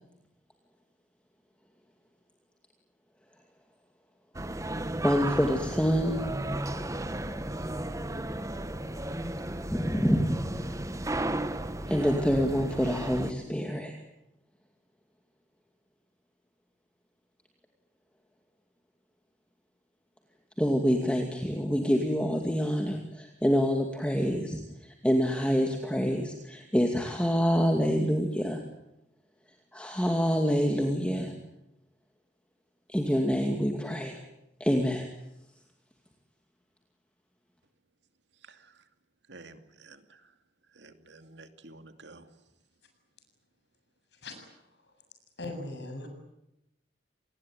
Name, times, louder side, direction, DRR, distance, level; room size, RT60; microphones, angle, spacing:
sound 1, 4.3-13.3, right 1 dB, 15° right, 1.2 m, -34 dB
voice 1, 5.0-6.2 9.7-10.7 11.9-13.9 20.6-28.6 29.7-31.3 32.9-34.2 34.6-35.1, equal, 5° left, 3 dB, 2.4 m, -26 dB
voice 2, 38.4-38.8 39.3-40.3 40.7-42.3, right 3 dB, 70° right, 8 dB, 2.5 m, -51 dB
voice 3, 45.4-46.1, left 2 dB, 65° left, 5 dB, 7.6 m, -38 dB
28.0 x 20.0 x 9.4 m, 0.87 s
head